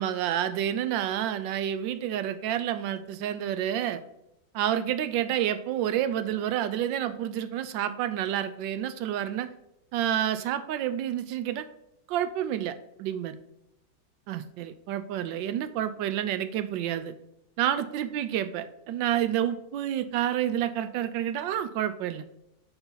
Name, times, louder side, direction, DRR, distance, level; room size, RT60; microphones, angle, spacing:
voice 1, 0.0-4.0 4.5-9.5 9.9-11.6 12.1-13.3 14.3-17.1 17.6-22.2, right 11 dB, 90° right, 11 dB, 1.3 m, -29 dB
6.9 x 4.1 x 3.9 m, 0.82 s
omnidirectional pair, 2.0 m